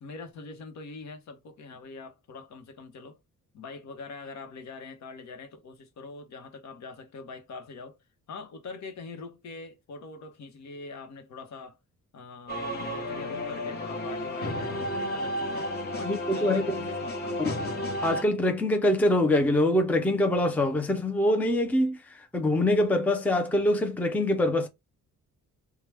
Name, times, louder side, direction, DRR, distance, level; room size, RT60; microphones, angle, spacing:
voice 1, 0.0-3.2 3.5-8.0 8.3-11.8 12.1-17.4, left 4 dB, 65° left, 1.0 m, -43 dB
sound 1, 12.5-18.2, left 1 dB, 30° left, 1.0 m, -32 dB
voice 2, 16.0-16.7 17.4-17.5 18.0-24.7, left 1 dB, 5° left, 0.5 m, -24 dB
4.7 x 2.2 x 3.3 m
cardioid pair, 135°, 31 cm